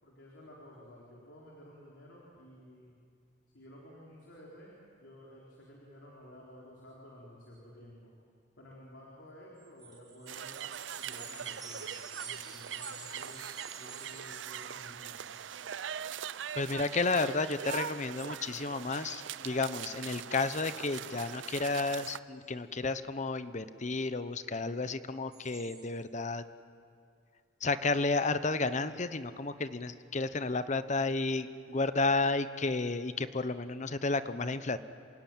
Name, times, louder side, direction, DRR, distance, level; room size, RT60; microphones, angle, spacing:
voice 1, 0.0-3.0 3.5-8.1 8.6-10.6 11.0-11.9 12.2-13.4 13.7-15.2, equal, 75° left, -4 dB, 4.1 m, -53 dB
sound 1, 9.5-16.2 16.5-16.8 17.2-17.3 17.8-18.0 18.3-18.4 19.0-19.1 19.4-19.7 25.3-25.8, right 4 dB, 20° right, 5.1 m, -50 dB
sound 2, 10.3-22.2, right 9 dB, 85° right, 0.5 m, -42 dB
voice 2, 16.5-26.4 27.6-34.8, left 3 dB, 40° left, 12 dB, 0.9 m, -32 dB
27.0 x 17.5 x 9.2 m, 2.3 s
head